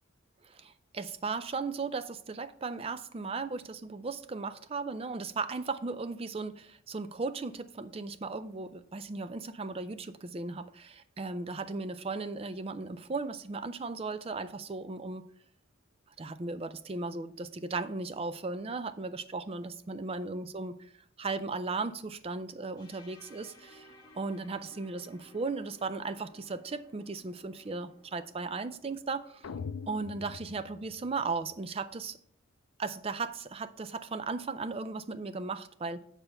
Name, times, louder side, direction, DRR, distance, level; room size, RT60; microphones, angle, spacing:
voice 1, 0.4-15.3 16.2-20.8 21.2-23.9 24.1-29.5 29.9-32.2 32.8-36.0, right 3 dB, 25° right, 0.4 m, -36 dB
sound 1, 22.8-30.6, left 1 dB, 20° left, 1.2 m, -59 dB
sound 2, 29.4-31.6, left 5 dB, 75° left, 0.4 m, -43 dB
8.8 x 4.4 x 5.5 m
head